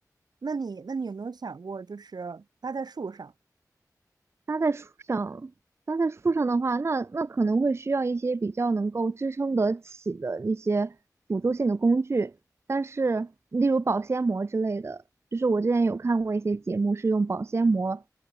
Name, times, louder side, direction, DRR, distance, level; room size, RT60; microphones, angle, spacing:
voice 1, 0.4-3.3, right 4 dB, 90° right, 2.1 m, -35 dB
voice 2, 4.5-5.5 5.9-10.9 11.3-12.3 12.7-15.0 15.3-18.0, right 3 dB, 40° right, 0.4 m, -26 dB
wide cardioid pair, 50°, 7 cm